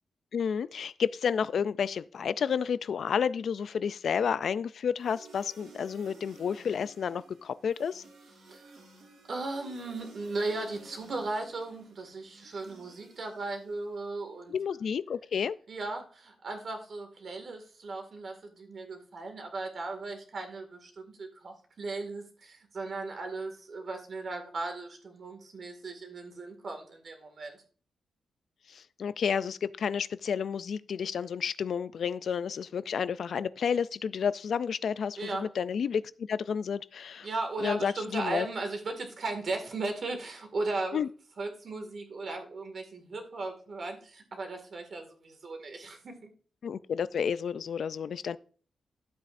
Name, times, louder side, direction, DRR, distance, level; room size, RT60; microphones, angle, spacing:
voice 1, 0.3-8.0 14.5-15.6 28.7-37.3 37.6-38.5 40.9-41.1 46.6-48.4, left 7 dB, 55° left, 0.3 m, -31 dB
sound 1, 4.9-14.1, right 3 dB, 80° right, 4.3 m, -55 dB
voice 2, 8.4-8.7 9.3-14.6 15.7-27.6 35.2-35.5 37.2-41.0 41.4-46.1, right 3 dB, 45° right, 2.0 m, -37 dB
12.5 x 8.2 x 2.6 m
wide cardioid pair, 165°, 0 cm